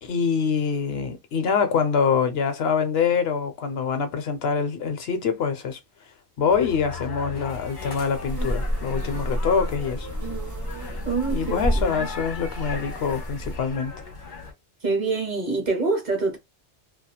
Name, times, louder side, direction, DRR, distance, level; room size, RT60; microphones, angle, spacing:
voice 1, 0.0-5.8 6.4-10.1 11.3-13.9, left 6 dB, 70° left, 0.8 m, -25 dB
sound 1, 6.5-14.5, left 4 dB, 45° left, 1.1 m, -38 dB
sound 2, 8.1-13.6, equal, 20° right, 0.7 m, -30 dB
voice 2, 11.0-12.1 14.8-16.4, right 3 dB, 45° right, 0.9 m, -26 dB
2.8 x 2.3 x 2.2 m
omnidirectional pair, 1.1 m